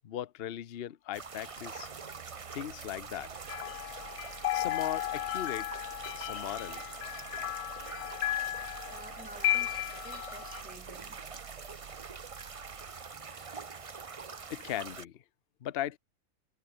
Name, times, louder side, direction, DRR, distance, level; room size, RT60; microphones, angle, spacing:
voice 1, 0.0-1.9 2.5-3.4 4.5-7.0 14.5-15.2 15.6-16.0, left 11 dB, 50° left, 0.8 m, -38 dB
sound 1, 1.1-15.0, right 5 dB, 35° right, 0.6 m, -44 dB
sound 2, 1.6-14.3, right 9 dB, 60° right, 1.1 m, -54 dB
sound 3, 3.5-10.6, left 14 dB, 80° left, 1.1 m, -35 dB
voice 2, 8.9-11.2, right 1 dB, 5° right, 1.3 m, -51 dB
omnidirectional pair, 1.6 m